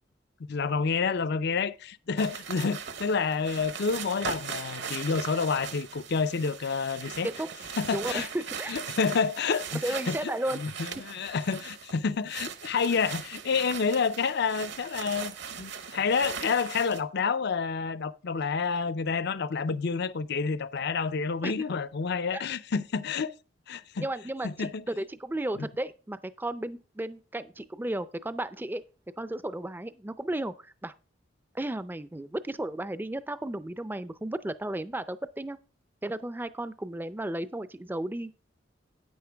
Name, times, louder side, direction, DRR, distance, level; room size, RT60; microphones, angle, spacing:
voice 1, 0.5-7.3 7.8-8.3 8.7-23.3 23.7-24.1 24.4-24.8 25.6-25.7, left 5 dB, 60° left, 0.5 m, -29 dB
sound 1, 2.2-12.0 12.3-17.0, right 7 dB, 65° right, 1.0 m, -39 dB
voice 2, 7.9-8.8 9.8-10.6 21.4-21.5 22.3-22.4 24.0-28.8 29.2-30.9 31.5-35.6 36.0-38.3, right 1 dB, 10° right, 0.4 m, -34 dB
9.6 x 9.2 x 3.4 m
head